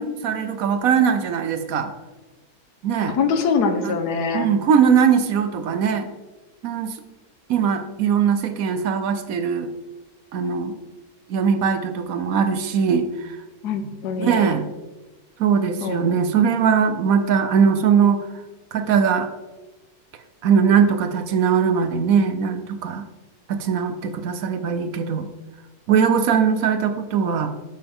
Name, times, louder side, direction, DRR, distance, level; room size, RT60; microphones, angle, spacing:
voice 1, 0.0-1.9 2.8-3.2 3.8-4.0 4.3-6.1 6.6-7.0 7.5-9.7 10.3-10.7 11.3-13.4 14.2-14.6 15.4-18.3 18.7-19.3 20.4-23.0 23.5-25.3 25.9-27.5, right 7 dB, 65° right, 9 dB, 1.0 m, -20 dB
voice 2, 3.0-4.5 13.6-14.5 15.8-16.2, left 5 dB, 75° left, 7 dB, 1.4 m, -23 dB
8.2 x 7.8 x 3.6 m, 1.1 s
omnidirectional pair, 1.8 m